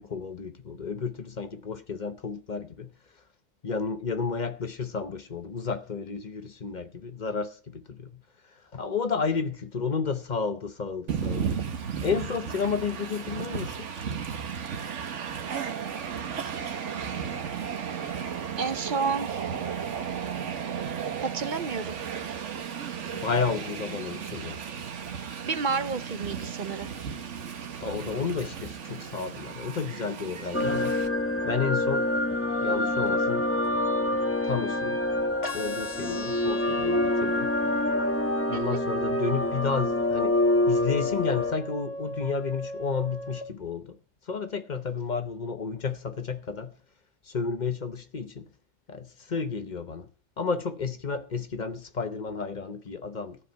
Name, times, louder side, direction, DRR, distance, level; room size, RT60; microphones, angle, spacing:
voice 1, 0.0-2.9 3.6-8.2 8.7-11.6 12.0-13.9 23.1-24.6 27.8-31.0 31.4-32.1 32.6-33.5 33.9-34.1 34.4-35.0 35.5-37.5 38.5-40.4 40.7-44.0 44.3-46.8 47.3-48.4 48.9-50.1 50.4-53.4, left 5 dB, 40° left, 1.0 m, -31 dB
Train, 11.1-31.1, right 7 dB, 75° right, 1.4 m, -34 dB
voice 2, 18.6-19.5 21.2-22.0 25.4-26.9 38.5-38.8, right 5 dB, 45° right, 0.7 m, -30 dB
sound 1, 30.5-41.5, left 1 dB, 10° left, 1.0 m, -26 dB
sound 2, 35.4-43.4, equal, 55° left, 1.8 m, -38 dB
14.5 x 5.0 x 9.1 m
omnidirectional pair, 1.3 m